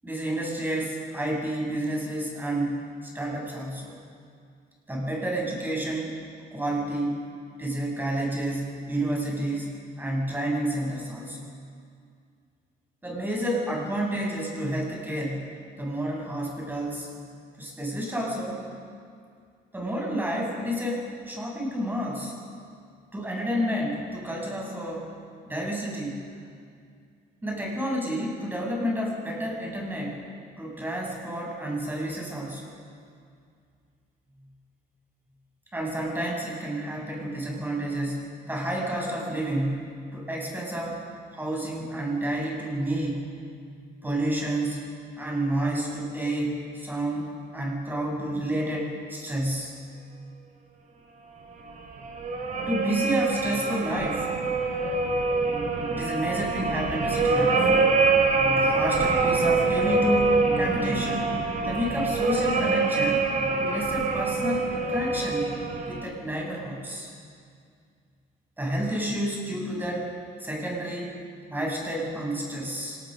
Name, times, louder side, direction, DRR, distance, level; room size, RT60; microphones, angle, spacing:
voice 1, 0.0-3.9 4.9-6.2 6.5-7.2 7.6-11.5 13.0-15.5 15.8-17.1 17.6-18.7 19.7-22.3 23.1-25.1 25.5-26.3 27.4-30.2 30.6-32.7 35.7-41.0 41.3-43.3 44.0-44.8 45.2-49.7 52.7-54.3 55.9-57.7 58.6-61.3 61.6-63.3 63.6-65.5 65.9-67.1 68.6-70.1 70.4-71.2 71.5-73.0, right 1 dB, 10° right, -1 dB, 7.4 m, -30 dB
sound 1, 51.7-66.0, right 3 dB, 50° right, 3.9 m, -25 dB
26.0 x 19.5 x 6.6 m, 2.3 s
cardioid pair, 110°, 17 cm